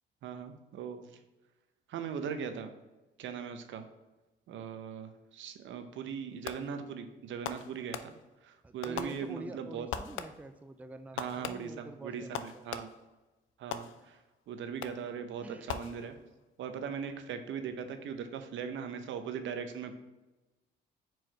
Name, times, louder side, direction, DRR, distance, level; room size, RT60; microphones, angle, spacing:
voice 1, 0.2-1.2 1.9-2.7 3.2-3.8 4.5-8.1 8.4-9.9 11.1-12.9 13.6-14.2 14.5-16.2 16.6-20.0, right 7 dB, 75° right, 8 dB, 0.7 m, -39 dB
Fireworks, 6.5-6.9 7.4-8.4 8.8-9.6 9.9-10.6 11.2-13.2 13.7-14.3 14.8-15.2 15.7-16.4, left 8 dB, 80° left, 0.5 m, -42 dB
voice 2, 8.6-12.6 15.4-15.7, right 2 dB, 5° right, 9 dB, 0.3 m, -46 dB
4.6 x 4.6 x 4.4 m, 1.1 s
cardioid pair, 90°, 20 cm